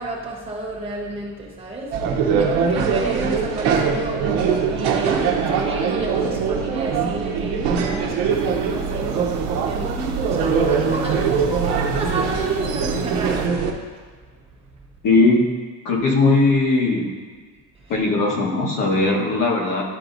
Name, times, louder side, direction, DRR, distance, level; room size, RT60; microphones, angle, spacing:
voice 1, 0.0-13.6 14.3-14.4 17.7-17.9, right 2 dB, 15° right, -4 dB, 1.3 m, -31 dB
sound 1, 1.9-13.7, right 6 dB, 70° right, 1.0 m, -22 dB
sound 2, 8.3-13.5, right 6 dB, 55° right, 0.7 m, -34 dB
voice 2, 15.0-15.5 15.8-17.1 17.9-19.8, left 3 dB, 50° left, -2 dB, 1.5 m, -18 dB
12.0 x 4.6 x 2.6 m, 1.5 s
cardioid pair, 165°, 41 cm